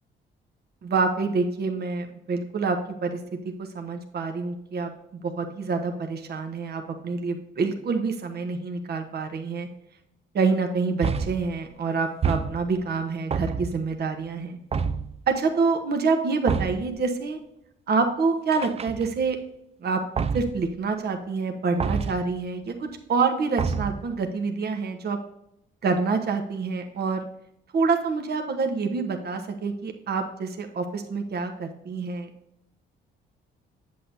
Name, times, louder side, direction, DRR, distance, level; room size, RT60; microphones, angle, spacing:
voice 1, 0.8-3.2 3.6-4.9 5.2-9.7 10.3-14.6 15.3-17.4 17.9-19.4 19.8-20.0 20.3-25.2 25.8-27.3 27.7-32.3, right 4 dB, 55° right, 4 dB, 1.2 m, -27 dB
sound 1, 11.0-11.6 12.2-12.9 13.3-13.9 14.7-15.2 16.5-17.0 18.5-19.3 20.2-20.7 21.8-22.3 23.6-24.1, right 5 dB, 30° right, 0.5 m, -28 dB
8.4 x 8.0 x 2.7 m, 0.78 s
cardioid pair, 90°, 20 cm